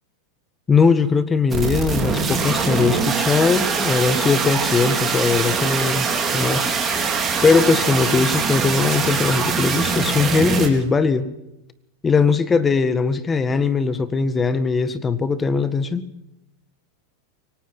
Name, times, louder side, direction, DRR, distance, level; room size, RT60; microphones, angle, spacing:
voice 1, 0.7-6.1 6.3-6.8 7.4-11.3 12.0-16.0, left 4 dB, 15° left, 14 dB, 1.7 m, -20 dB
sound 1, 1.5-10.7, right 5 dB, 20° right, 4.3 m, -22 dB
23.5 x 18.0 x 6.0 m, 0.87 s
supercardioid pair, 125°, 0 cm